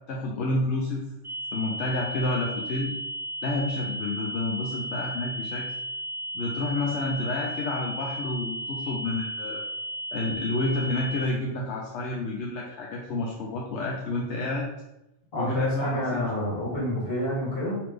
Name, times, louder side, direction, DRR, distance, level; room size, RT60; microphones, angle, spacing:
voice 1, 0.1-1.1 1.5-2.9 3.4-5.8 6.3-9.6 10.1-14.7 15.4-16.2, left 2 dB, 80° left, -2 dB, 0.9 m, -29 dB
sound 1, 1.2-11.2, equal, 15° right, 1.1 m, -35 dB
voice 2, 15.3-17.8, left 1 dB, 55° left, -5 dB, 1.5 m, -28 dB
3.2 x 2.8 x 3.4 m, 0.88 s
omnidirectional pair, 1.2 m